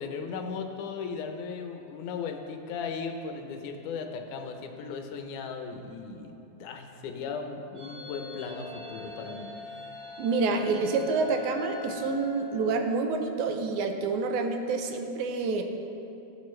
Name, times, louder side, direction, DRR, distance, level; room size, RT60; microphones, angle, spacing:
voice 1, 0.0-9.5, left 5 dB, 80° left, 5 dB, 2.2 m, -37 dB
sound 1, 7.7-13.1, left 3 dB, 25° right, 2.4 m, -43 dB
voice 2, 10.2-15.6, right 4 dB, 80° right, 5 dB, 2.1 m, -28 dB
15.5 x 8.5 x 3.2 m, 2.9 s
omnidirectional pair, 3.5 m